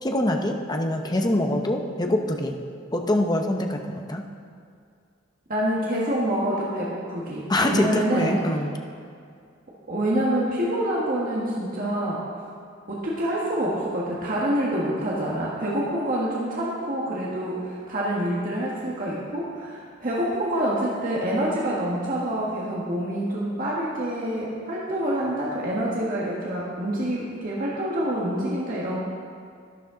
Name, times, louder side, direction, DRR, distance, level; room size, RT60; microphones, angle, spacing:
voice 1, 0.0-2.6 2.9-4.2 7.5-8.7, left 1 dB, 20° left, 3 dB, 0.8 m, -24 dB
voice 2, 5.5-8.3 9.9-12.2 12.9-29.0, right 1 dB, 45° right, -6 dB, 1.6 m, -26 dB
12.0 x 11.0 x 3.9 m, 2.3 s
head